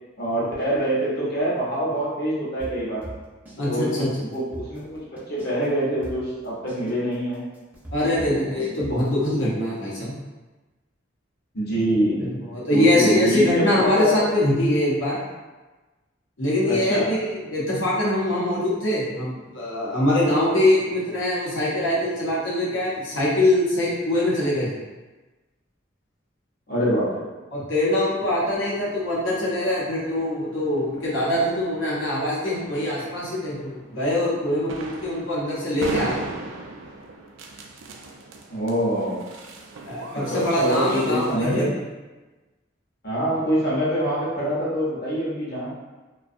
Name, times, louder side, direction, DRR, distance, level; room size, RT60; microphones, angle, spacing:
voice 1, 0.2-3.0 3.6-7.4 8.2-8.6 11.5-12.3 12.7-14.1 16.7-17.1 26.7-27.3 38.5-39.2 40.1-41.7 43.0-45.7, equal, 55° left, -6 dB, 0.8 m, -25 dB
sound 1, 2.6-3.6 3.9-4.0 4.3-5.6 6.0-9.4, right 1 dB, 10° right, 0.5 m, -39 dB
voice 2, 3.6-4.3 7.9-10.1 12.2-15.2 16.4-24.7 27.5-36.2 39.9-41.8, left 1 dB, 90° left, -6 dB, 0.8 m, -23 dB
sound 2, 28.0-41.4, right 3 dB, 85° right, 0.3 m, -39 dB
2.5 x 2.2 x 2.5 m, 1.2 s
head